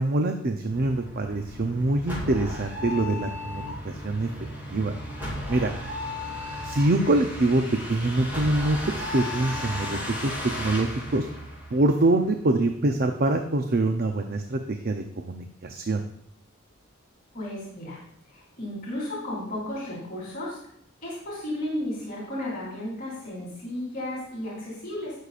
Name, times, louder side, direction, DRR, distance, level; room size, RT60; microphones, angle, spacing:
voice 1, 0.0-4.3 4.7-4.9 5.5-5.7 6.6-7.6 7.9-11.3 11.7-16.0, right 2 dB, 45° right, 5 dB, 0.6 m, -25 dB
sound 1, 0.7-12.2, left 1 dB, 10° right, 3.4 m, -35 dB
voice 2, 17.3-18.0 18.3-20.6 21.0-25.1, left 1 dB, 40° left, -6 dB, 3.7 m, -34 dB
17.5 x 6.6 x 2.5 m, 0.71 s
head